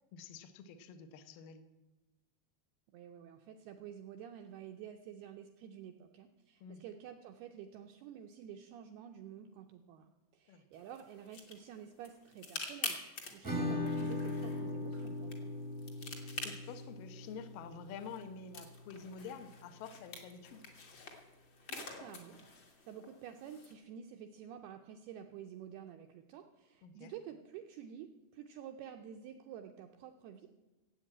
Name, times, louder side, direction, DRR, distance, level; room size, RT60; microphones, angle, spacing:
voice 1, 0.1-1.7 6.6-6.8 10.5-10.7 16.4-20.7 26.8-27.1, left 6 dB, 75° left, 10 dB, 2.0 m, -48 dB
voice 2, 2.9-13.0 13.3-15.5 21.7-22.5 22.9-30.5, right 9 dB, 80° right, 5 dB, 2.3 m, -50 dB
sound 1, 10.7-23.7, left 3 dB, 50° left, 1.4 m, -48 dB
Acoustic guitar / Strum, 13.4-18.9, left 2 dB, 20° right, 0.5 m, -40 dB
15.5 x 8.5 x 8.7 m, 1.1 s
omnidirectional pair, 5.4 m